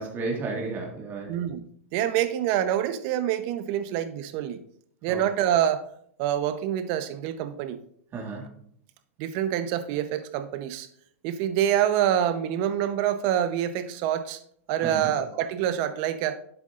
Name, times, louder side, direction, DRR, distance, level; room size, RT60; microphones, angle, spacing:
voice 1, 0.0-1.4 5.1-5.2 8.1-8.6 14.8-15.2, right 3 dB, 30° right, -1 dB, 1.9 m, -33 dB
voice 2, 1.3-4.6 5.0-5.8 6.2-7.8 9.2-10.9 11.2-14.4 14.7-16.4, right 10 dB, 45° right, 11 dB, 0.8 m, -26 dB
11.0 x 8.1 x 2.5 m, 0.67 s
hypercardioid pair, 135°, 8 cm